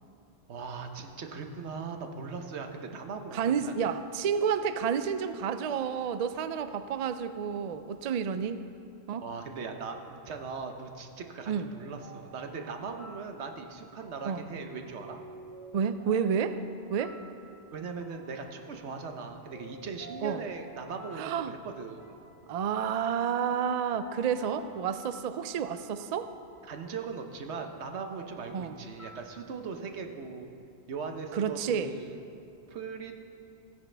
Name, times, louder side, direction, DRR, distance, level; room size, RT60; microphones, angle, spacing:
voice 1, 0.5-3.7 9.2-15.2 17.7-22.1 26.7-30.5 30.9-32.2 32.7-33.2, right 5 dB, 85° right, 5 dB, 1.2 m, -39 dB
voice 2, 3.3-8.6 9.1-9.3 11.5-11.7 14.2-14.4 15.7-16.6 16.9-17.2 20.2-20.4 21.2-21.5 22.5-26.3 28.5-28.8 31.3-31.9, right 7 dB, 60° right, 11 dB, 0.4 m, -30 dB
sound 1, 11.3-29.2, right 2 dB, 15° left, 1.9 m, -53 dB
15.0 x 10.0 x 3.3 m, 2.6 s
omnidirectional pair, 1.1 m